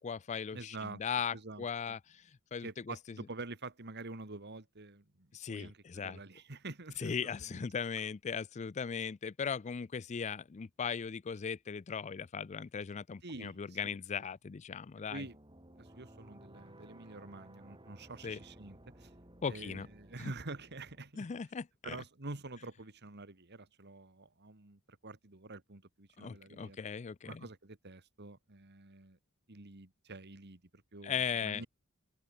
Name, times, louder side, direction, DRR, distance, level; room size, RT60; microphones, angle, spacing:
voice 1, 0.0-2.9 5.3-6.2 7.0-15.3 18.2-18.4 19.4-19.9 20.2-20.3 21.2-22.0 26.2-27.5 31.0-31.6, left 6 dB, 35° left, 0.4 m, -38 dB
voice 2, 0.5-1.0 1.3-2.0 2.6-7.6 13.2-14.0 15.1-15.4 15.7-19.1 19.5-21.3 21.8-26.8 27.2-29.2 29.5-31.7, right 3 dB, 50° right, 2.0 m, -47 dB
sound 1, 15.1-21.0, right 1 dB, 25° right, 6.9 m, -57 dB
head